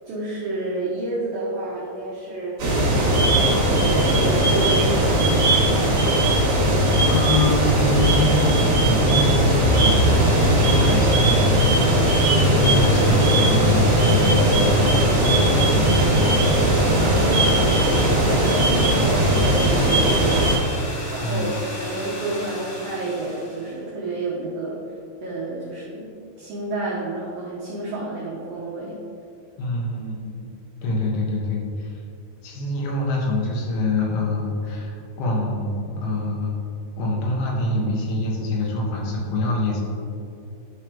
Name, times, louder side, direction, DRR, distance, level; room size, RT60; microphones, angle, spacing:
voice 1, 0.0-2.6 3.0-5.5 16.9-24.8 25.2-29.0, right 2 dB, 80° right, -6 dB, 2.0 m, -30 dB
sound 1, 2.6-20.6, right 1 dB, 50° right, 1.6 m, -18 dB
voice 2, 7.1-16.1 20.3-20.6 21.2-21.6 29.6-30.5 30.8-32.0 32.4-36.6 37.0-39.8, left 2 dB, 75° left, -2 dB, 3.4 m, -25 dB
sound 2, 9.3-23.7, left 1 dB, 55° left, 2.6 m, -34 dB
12.0 x 4.7 x 3.4 m, 2.6 s
omnidirectional pair, 5.6 m